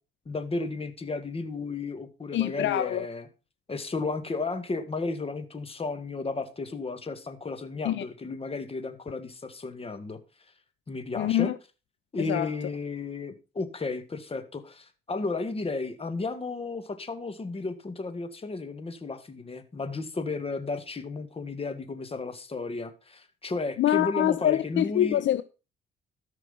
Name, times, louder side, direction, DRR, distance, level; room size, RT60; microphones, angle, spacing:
voice 1, 0.3-3.3 3.7-10.2 10.9-11.5 12.1-25.2, left 3 dB, 30° left, 2.0 m, -33 dB
voice 2, 2.3-3.1 7.8-8.0 11.1-11.6 12.2-12.5 23.8-25.4, left 12 dB, 70° left, 0.7 m, -25 dB
13.5 x 6.0 x 5.6 m
cardioid pair, 90°, 20 cm